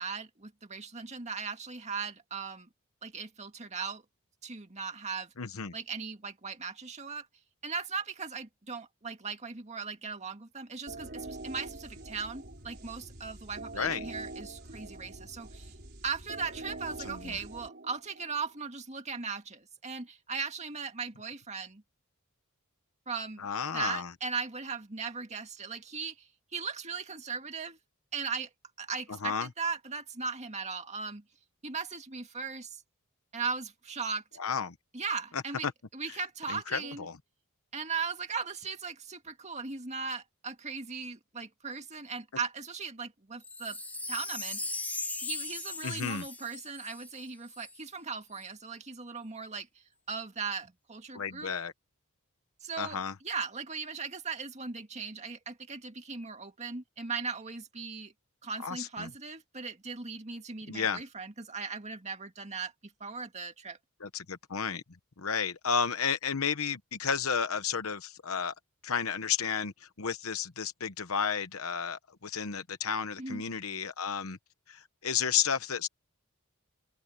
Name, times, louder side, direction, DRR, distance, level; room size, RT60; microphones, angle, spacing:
voice 1, 0.0-2.7 3.0-4.0 4.4-5.3 5.7-7.3 7.6-15.7 16.0-21.8 23.1-23.5 23.7-27.8 28.1-28.5 28.8-31.2 31.6-32.8 33.3-34.2 34.9-37.1 37.7-43.8 44.1-44.6 45.2-49.7 50.1-51.5 52.6-53.0 53.2-58.1 58.4-62.7 63.0-63.8 73.2-73.4, right 5 dB, 30° right, 2.1 m, -38 dB
voice 2, 5.4-5.7 13.7-14.1 17.0-17.4 23.4-24.1 29.2-29.5 34.4-34.7 35.3-35.7 36.5-37.2 45.8-46.2 51.1-51.7 52.8-53.1 58.6-59.1 60.7-61.0 64.0-64.8 65.2-68.5 68.8-74.4 74.7-75.9, left 6 dB, 70° left, 1.0 m, -32 dB
sound 1, 10.9-18.5, right 2 dB, 50° right, 5.0 m, -45 dB
Wind chime, 43.4-47.8 48.3-48.4, left 2 dB, 10° left, 2.5 m, -38 dB
head